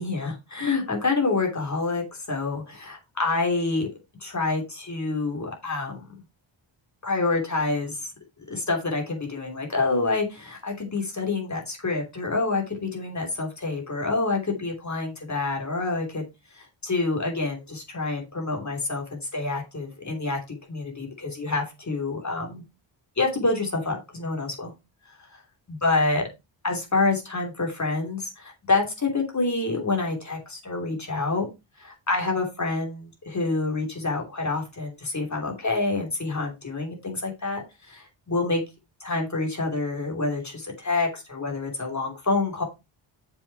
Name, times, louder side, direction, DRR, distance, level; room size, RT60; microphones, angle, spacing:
voice 1, 0.0-3.9 4.2-6.1 7.0-8.0 8.5-16.2 16.5-22.6 23.2-24.7 25.7-26.3 26.6-31.5 31.8-38.6 39.0-42.6, left 3 dB, 35° left, 1 dB, 3.1 m, -27 dB
7.0 x 5.7 x 4.7 m, 0.25 s
wide cardioid pair, 105°, 49 cm